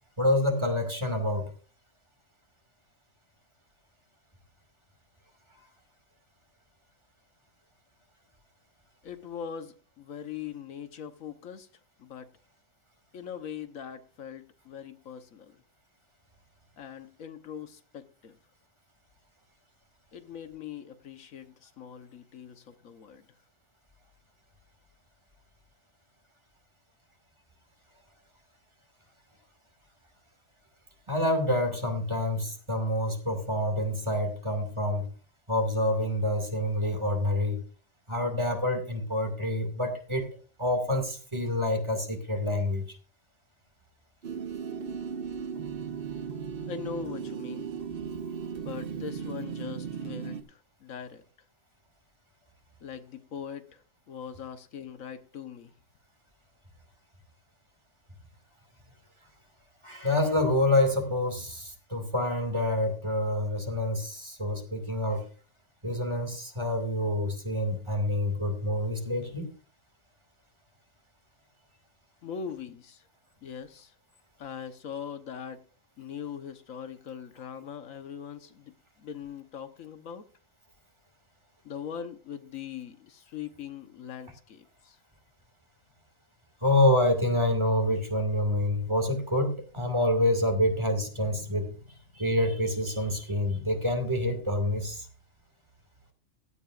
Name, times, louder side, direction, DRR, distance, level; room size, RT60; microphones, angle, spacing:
voice 1, 0.2-1.5 31.1-35.1 35.5-37.6 38.1-40.3 40.6-42.8 59.8-65.3 65.8-69.5 86.6-91.8 92.1-95.1, left 1 dB, 20° right, 2.3 m, -27 dB
voice 2, 9.0-11.7 12.0-12.3 13.1-15.6 16.8-18.4 20.1-23.3 46.7-48.2 48.6-51.2 52.8-55.7 72.2-73.0 73.4-73.9 74.4-75.6 76.0-80.2 81.6-85.0, left 8 dB, 85° left, 1.5 m, -41 dB
sound 1, 44.2-50.4, right 6 dB, 50° right, 0.9 m, -36 dB
16.0 x 12.5 x 2.5 m
omnidirectional pair, 1.4 m